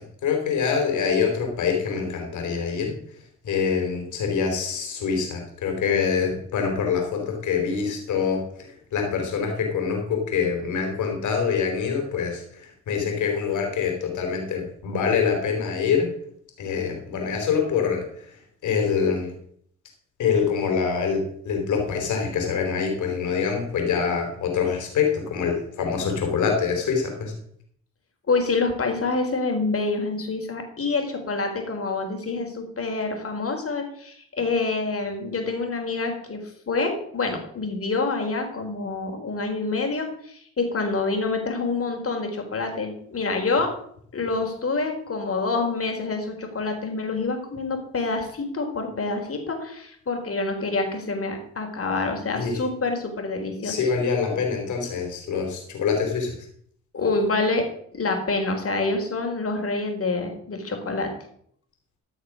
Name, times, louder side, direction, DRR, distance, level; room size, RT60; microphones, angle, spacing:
voice 1, 0.2-2.9 3.4-16.1 16.6-18.0 18.6-19.3 20.2-27.3 52.3-52.6 53.6-56.3, left 6 dB, 80° left, 2 dB, 4.5 m, -25 dB
voice 2, 28.3-43.7 44.1-53.8 56.9-57.7 57.9-61.1, left 3 dB, 50° left, 4 dB, 4.1 m, -27 dB
14.0 x 6.5 x 6.4 m, 0.65 s
supercardioid pair, 55°, 30 cm